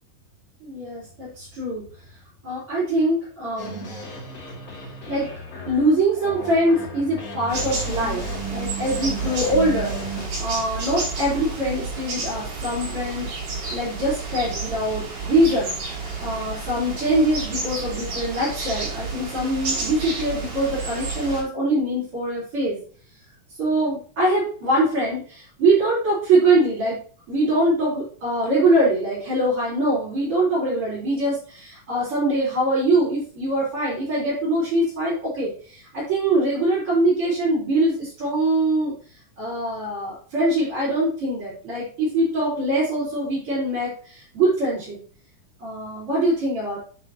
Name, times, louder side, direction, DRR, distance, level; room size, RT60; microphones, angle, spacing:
voice 1, 0.6-1.8 2.4-3.9 5.1-5.3 5.7-8.2 8.5-13.3 13.7-22.8 23.6-27.0 27.3-38.9 39.4-45.0 45.6-46.8, right 1 dB, 45° right, -11 dB, 5.4 m, -23 dB
sound 1, 3.6-10.3, right 1 dB, 30° left, 2.3 m, -35 dB
sound 2, 7.5-21.4, right 3 dB, 80° right, 5.1 m, -31 dB
9.4 x 7.4 x 3.0 m, 0.44 s
omnidirectional pair, 3.6 m